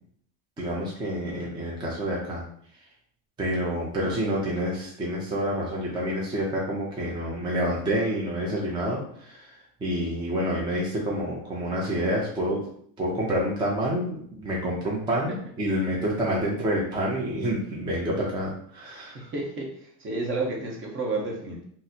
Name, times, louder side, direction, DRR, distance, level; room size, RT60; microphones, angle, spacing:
voice 1, 0.6-2.4 3.4-12.6 13.0-19.3, equal, 10° right, -4 dB, 0.4 m, -28 dB
voice 2, 18.9-21.6, right 3 dB, 30° right, 0 dB, 0.8 m, -31 dB
4.0 x 2.1 x 2.7 m, 0.62 s
cardioid pair, 140°, 42 cm